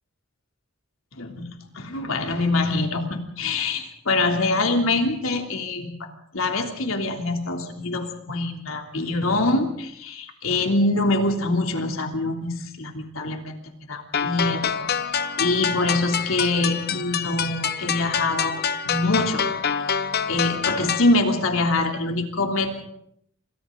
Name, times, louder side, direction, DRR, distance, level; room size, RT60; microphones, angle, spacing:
voice 1, 1.2-1.5 1.7-5.9 6.3-14.7 15.4-19.5 19.9-22.8, left 2 dB, 85° left, 3 dB, 3.2 m, -24 dB
sound 1, 14.1-21.1, left 7 dB, 50° left, 0.9 m, -26 dB
28.0 x 25.5 x 4.0 m, 0.71 s
head